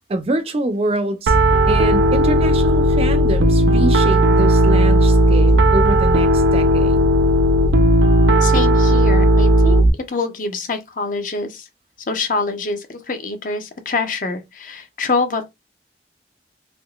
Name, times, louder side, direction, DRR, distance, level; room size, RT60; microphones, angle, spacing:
voice 1, 0.1-1.3 1.7-7.0, right 1 dB, 35° right, 0.4 m, -24 dB
Piano, 1.3-9.9, right 1 dB, 90° right, 0.5 m, -14 dB
voice 2, 8.4-11.7 12.1-15.5, left 3 dB, 50° left, 0.7 m, -25 dB
3.6 x 2.7 x 2.3 m
head